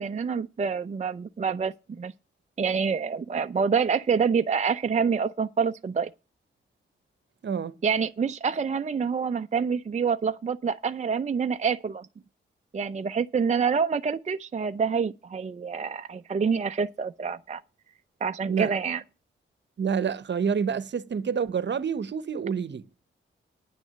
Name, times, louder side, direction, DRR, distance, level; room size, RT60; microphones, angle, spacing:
voice 1, 0.0-2.1 2.6-6.1 7.8-12.1 12.7-17.6 18.2-19.0, right 6 dB, 35° right, 0.5 m, -27 dB
voice 2, 7.4-7.7 18.5-18.7 19.8-22.9, right 6 dB, 55° right, 0.9 m, -28 dB
9.6 x 6.2 x 8.6 m
cardioid pair, 55°, 21 cm